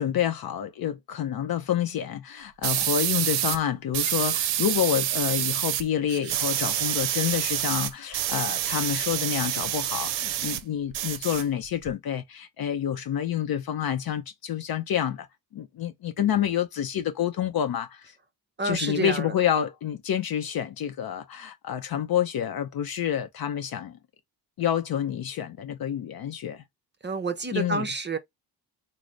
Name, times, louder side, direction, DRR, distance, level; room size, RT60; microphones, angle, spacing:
voice 1, 0.0-15.3 15.5-18.2 18.6-24.0 24.6-26.6 27.5-27.9, left 9 dB, 50° left, 0.6 m, -28 dB
sound 1, 2.6-3.6 3.9-5.8 6.1-10.6 10.9-11.9, right 12 dB, 70° right, 0.6 m, -27 dB
voice 2, 18.6-19.3 27.0-28.2, right 3 dB, 25° right, 0.5 m, -29 dB
3.1 x 2.0 x 3.6 m
cardioid pair, 75°, 47 cm